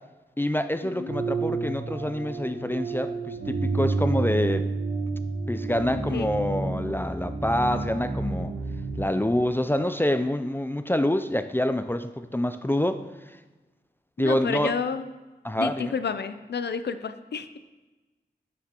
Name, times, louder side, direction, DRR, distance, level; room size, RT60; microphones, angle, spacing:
voice 1, 0.4-4.7 5.5-8.5 9.0-13.4 14.2-14.7 15.4-15.9, left 1 dB, 15° left, 10 dB, 0.3 m, -26 dB
sound 1, 1.1-9.0, right 3 dB, 70° right, 1.1 m, -30 dB
voice 2, 5.9-6.4 14.2-15.1 15.6-17.6, left 5 dB, 85° left, 11 dB, 0.4 m, -30 dB
9.7 x 6.1 x 2.9 m, 1.2 s
wide cardioid pair, 65°, 17 cm